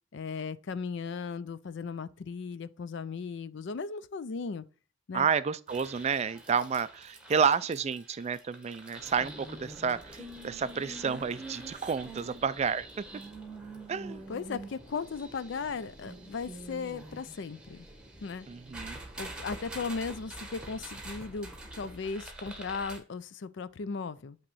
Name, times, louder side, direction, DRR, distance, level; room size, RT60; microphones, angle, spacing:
voice 1, 0.1-4.6 5.1-5.3 14.3-17.9 18.2-18.5 19.2-24.4, left 5 dB, 60° left, 0.4 m, -37 dB
voice 2, 5.1-13.0 13.9-14.2 18.5-19.0, right 6 dB, 30° right, 0.3 m, -30 dB
sound 1, 5.7-23.0, right 2 dB, 5° right, 1.2 m, -45 dB
8.7 x 3.0 x 6.1 m
head